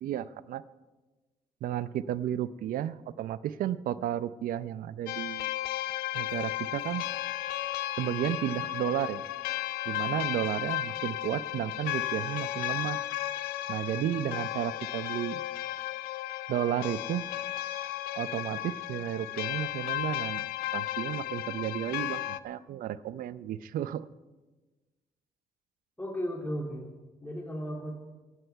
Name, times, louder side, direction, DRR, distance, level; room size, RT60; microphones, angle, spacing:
voice 1, 0.0-0.6 1.6-5.5 6.1-7.1 8.0-9.2 9.9-13.0 13.7-15.4 16.5-17.3 18.2-24.1, right 11 dB, 70° right, 16 dB, 0.6 m, -33 dB
sound 1, 5.1-22.4, left 15 dB, 85° left, 0.5 m, -34 dB
voice 2, 26.0-26.9 27.2-27.9, equal, 10° left, -1 dB, 2.7 m, -35 dB
23.5 x 9.9 x 4.6 m, 1.2 s
supercardioid pair, 65°, 15 cm